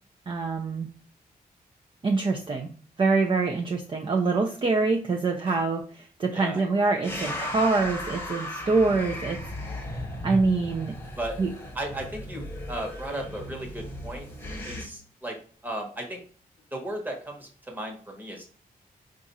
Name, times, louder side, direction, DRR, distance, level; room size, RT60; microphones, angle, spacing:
voice 1, 0.3-0.9 2.0-2.7 3.0-9.4 10.2-11.0 11.4-11.5, right 3 dB, 35° right, 2 dB, 0.5 m, -25 dB
voice 2, 6.3-6.6 11.2-11.4 11.7-14.3 14.7-15.4 15.6-16.2 16.7-18.6, right 1 dB, 10° right, 1 dB, 1.1 m, -35 dB
sound 1, 7.0-14.9, left 1 dB, 15° left, 0.9 m, -36 dB
4.8 x 2.5 x 4.1 m, 0.42 s
wide cardioid pair, 155°, 16 cm